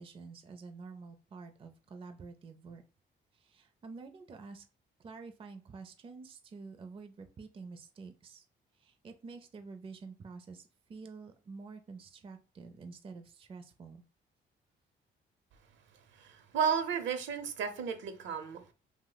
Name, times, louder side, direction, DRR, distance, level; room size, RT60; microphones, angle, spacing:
voice 1, 0.0-2.8 3.4-4.6 5.0-8.4 8.8-14.0, right 4 dB, 30° right, 7 dB, 0.4 m, -48 dB
voice 2, 16.2-18.7, right 7 dB, 70° right, 8 dB, 0.6 m, -33 dB
2.6 x 2.1 x 3.9 m, 0.34 s
cardioid pair, 90°, 20 cm